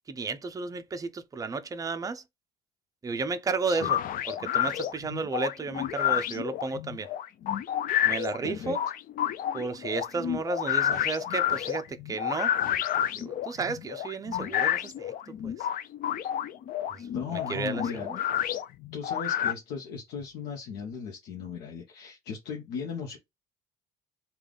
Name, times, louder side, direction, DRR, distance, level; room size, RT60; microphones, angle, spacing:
voice 1, 0.0-2.2 3.0-4.0 4.3-7.1 8.0-8.8 9.5-12.5 13.2-15.7 16.9-18.2, right 4 dB, 20° right, 0.4 m, -33 dB
sound 1, 3.8-19.5, left 10 dB, 55° left, 0.4 m, -30 dB
voice 2, 8.4-8.7 17.1-18.2 18.9-23.2, left 6 dB, 85° left, 0.7 m, -37 dB
3.3 x 2.3 x 3.7 m
cardioid pair, 110°, 17 cm